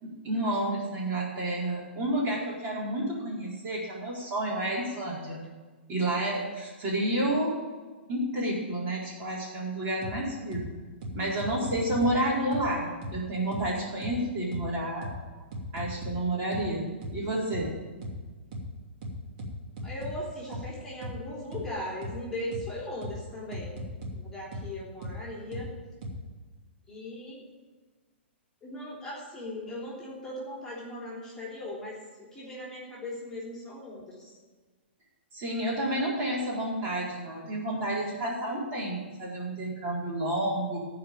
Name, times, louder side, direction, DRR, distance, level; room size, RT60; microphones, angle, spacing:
voice 1, 0.0-5.4 5.9-7.5 8.1-10.6 11.1-15.1 15.7-17.7 35.3-40.8, right 1 dB, 30° right, -5 dB, 4.4 m, -30 dB
sound 1, 10.0-10.1 10.5-10.6 11.0-12.1 12.5-12.6 13.0-13.1 13.5-13.6 14.0-14.1 14.5-14.6 15.0-15.1 15.5-16.1 16.5-16.6 17.0-17.1 17.5-17.6 18.0-18.1 18.5-18.6 19.0-20.1 20.5-20.6 21.0-21.1 21.5-21.6 22.0-22.1 22.5-22.6 23.0-23.1 23.5-24.1 24.5-24.6 25.0-25.1 25.5-25.6 26.0-26.1, equal, 45° right, 2.8 m, -37 dB
voice 2, 19.8-23.8 24.1-25.7 26.9-27.4 28.6-34.4, left 1 dB, 10° left, -6 dB, 3.3 m, -39 dB
14.5 x 5.1 x 8.8 m, 1.4 s
hypercardioid pair, 120°, 6 cm